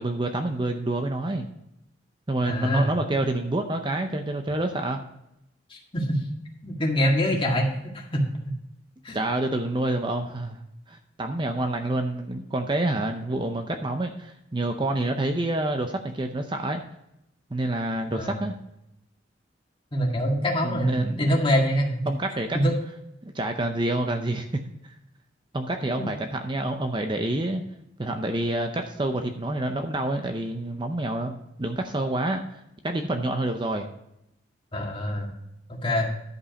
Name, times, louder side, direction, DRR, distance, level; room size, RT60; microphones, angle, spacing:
voice 1, 0.0-1.5 2.3-5.0 9.1-10.6 10.9-16.8 17.5-18.6 20.6-21.2 22.1-22.7 23.3-24.6 25.5-27.6 28.0-32.4 32.8-33.9, right 2 dB, 25° right, 5 dB, 0.6 m, -28 dB
voice 2, 2.5-2.9 5.7-6.2 6.6-7.7 7.9-8.2 9.0-9.2 18.1-18.4 19.9-22.1 22.5-22.7 25.9-26.1 34.7-35.3 35.7-36.1, equal, 25° left, -1 dB, 1.9 m, -25 dB
11.5 x 5.4 x 5.2 m, 0.83 s
head